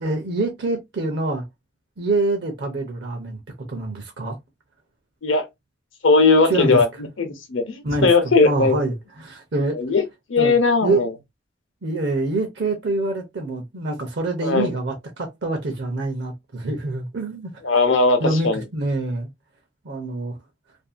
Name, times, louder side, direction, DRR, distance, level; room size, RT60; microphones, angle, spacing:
voice 1, 0.0-1.4 2.0-3.4 3.7-4.4 6.4-6.8 7.8-9.8 10.4-10.5 10.8-11.0 11.8-17.5 18.2-19.3 19.8-20.4, right 2 dB, 55° right, 0.6 m, -25 dB
voice 2, 6.0-6.9 7.2-8.8 9.7-10.0 10.3-11.1 14.4-14.7 17.6-18.6, left 3 dB, 70° left, 0.7 m, -18 dB
2.6 x 2.5 x 2.4 m
head